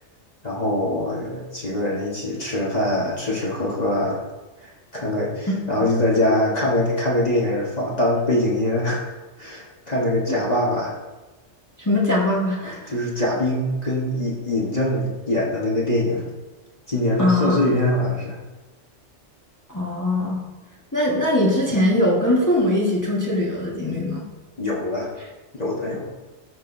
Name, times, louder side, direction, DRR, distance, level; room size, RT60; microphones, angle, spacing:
voice 1, 0.4-4.2 4.6-10.9 12.9-16.3 16.9-18.4 24.6-25.3 25.5-26.1, left 1 dB, 35° left, -5 dB, 1.6 m, -23 dB
voice 2, 5.5-5.8 11.8-12.9 17.2-17.6 19.7-20.4 20.9-24.3, left 1 dB, 15° left, -5 dB, 1.6 m, -21 dB
14.0 x 6.7 x 2.7 m, 1.2 s
omnidirectional pair, 1.3 m